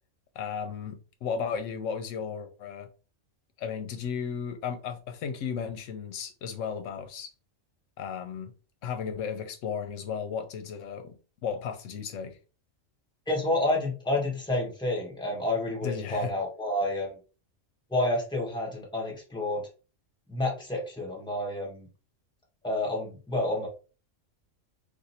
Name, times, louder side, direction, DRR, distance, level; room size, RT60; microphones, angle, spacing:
voice 1, 0.4-2.9 3.6-7.3 8.0-8.5 8.8-11.1 11.4-12.4 15.8-16.3, left 7 dB, 80° left, 0.9 m, -34 dB
voice 2, 13.3-17.2 17.9-19.7 20.3-21.9 22.6-23.7, left 1 dB, 5° left, 1.0 m, -29 dB
2.5 x 2.5 x 4.2 m
omnidirectional pair, 1.3 m